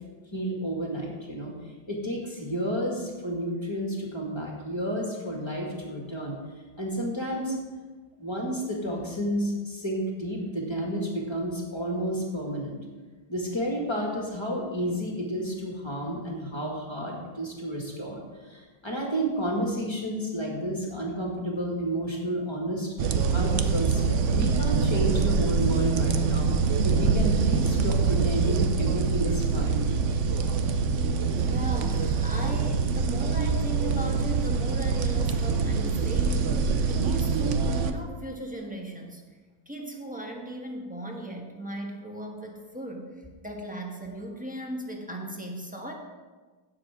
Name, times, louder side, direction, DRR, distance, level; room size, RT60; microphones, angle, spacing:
voice 1, 0.3-1.5 1.9-6.4 6.8-7.5 8.2-12.8 13.3-22.9 23.3-26.5 26.8-29.8, equal, 15° left, -2 dB, 1.9 m, -31 dB
sound 1, 23.0-37.9, right 5 dB, 85° right, 0.6 m, -25 dB
voice 2, 31.4-39.2 39.6-43.1 43.4-45.9, right 1 dB, 5° right, 0 dB, 1.0 m, -37 dB
16.5 x 7.2 x 3.7 m, 1.3 s
omnidirectional pair, 2.1 m